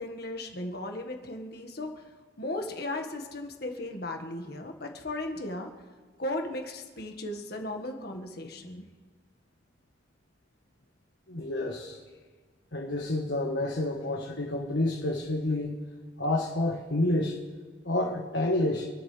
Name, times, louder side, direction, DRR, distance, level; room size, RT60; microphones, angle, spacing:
voice 1, 0.0-2.0 2.4-5.7 6.2-8.8, left 1 dB, 60° left, 3 dB, 1.8 m, -36 dB
voice 2, 11.3-12.0 12.7-15.8 16.2-17.4 17.8-18.9, left 1 dB, 80° left, 0 dB, 1.5 m, -29 dB
27.5 x 12.5 x 3.4 m, 1.4 s
head